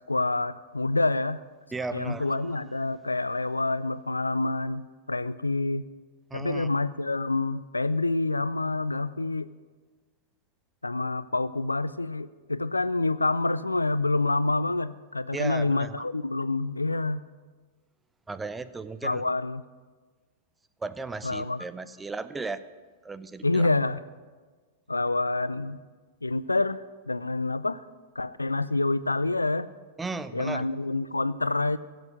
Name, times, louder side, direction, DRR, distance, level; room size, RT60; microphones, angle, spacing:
voice 1, 0.1-1.4 1.9-5.9 6.3-9.5 10.8-17.2 19.0-19.6 21.2-21.6 23.4-24.0 24.9-25.8 26.2-27.8 28.2-29.7 30.3-31.8, left 2 dB, 85° left, 17 dB, 0.4 m, -27 dB
voice 2, 1.7-2.7 6.3-6.7 15.3-16.0 18.3-19.2 20.8-22.6 23.0-23.7 30.0-30.6, right 3 dB, 10° right, 12 dB, 0.5 m, -36 dB
16.0 x 7.8 x 6.3 m, 1.4 s
figure-of-eight pair, 95°, 0 cm